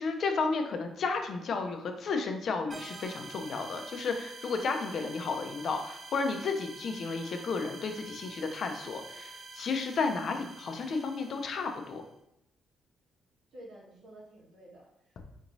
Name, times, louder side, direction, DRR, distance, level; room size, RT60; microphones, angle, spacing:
voice 1, 0.0-12.0, left 4 dB, 60° left, 5 dB, 0.5 m, -33 dB
sound 1, 2.7-12.1, right 3 dB, 30° right, 0.3 m, -47 dB
voice 2, 13.5-15.2, right 1 dB, 75° right, -5 dB, 1.5 m, -51 dB
4.3 x 3.0 x 2.6 m, 0.82 s
cardioid pair, 90°, 0 cm